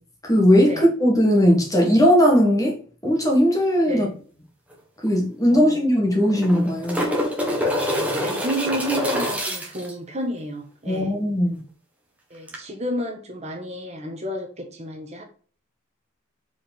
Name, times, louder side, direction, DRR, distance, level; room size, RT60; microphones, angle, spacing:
voice 1, 0.2-2.8 3.0-4.1 5.0-7.0 10.9-11.6, equal, 15° left, 1.7 m, -18 dB
voice 2, 3.9-4.2 5.5-5.9 8.2-11.1 12.3-15.2, equal, 30° right, 1.3 m, -31 dB
sound 1, 4.7-4.8 5.1-5.2 6.2-9.9 12.5-12.6, equal, 5° right, 1.6 m, -25 dB
5.1 x 4.9 x 5.3 m
head